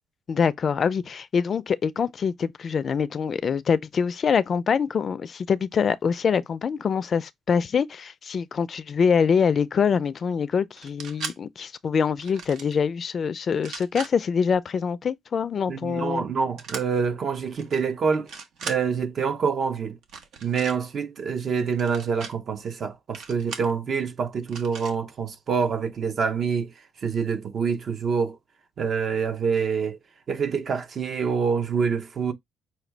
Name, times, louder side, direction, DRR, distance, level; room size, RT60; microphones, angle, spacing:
voice 1, 0.3-16.2, left 6 dB, 45° left, 0.4 m, -24 dB
sound 1, 10.8-11.4 12.2-12.7 13.5-14.1 16.6-16.8 17.6-17.8 18.1-18.8 20.0-20.8 21.7-22.3 23.1-23.7 24.5-24.9, right 5 dB, 75° right, 0.9 m, -38 dB
voice 2, 15.7-18.3 18.6-20.0 20.4-26.7 27.0-28.4 28.8-30.0 30.3-32.3, right 6 dB, 45° right, 0.7 m, -26 dB
5.9 x 2.3 x 3.3 m
cardioid pair, 115°, 0 cm